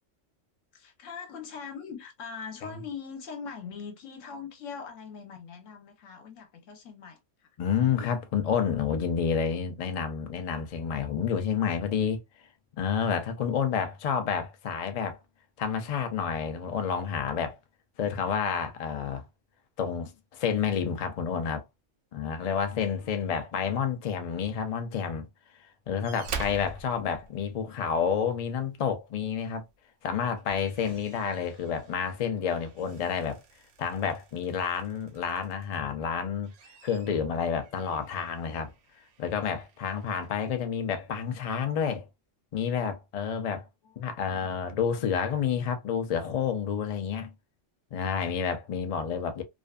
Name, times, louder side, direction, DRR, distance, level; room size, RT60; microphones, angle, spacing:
voice 1, 0.7-7.5 23.0-23.1 23.6-23.8 43.8-44.5, left 6 dB, 80° left, 1.1 m, -42 dB
voice 2, 7.6-12.2 12.8-15.2 15.6-17.6 18.0-19.2 19.8-21.6 22.1-25.3 25.9-29.6 30.0-33.4 33.8-36.5 36.8-38.7 39.2-42.1 42.5-43.7 44.0-47.3 47.9-49.4, left 7 dB, 65° left, 0.3 m, -29 dB
sound 1, 26.0-28.0 29.6-29.8 30.2-35.9 36.3-40.5 41.4-41.5, right 5 dB, 75° right, 0.9 m, -46 dB
2.5 x 2.4 x 2.2 m
omnidirectional pair, 1.3 m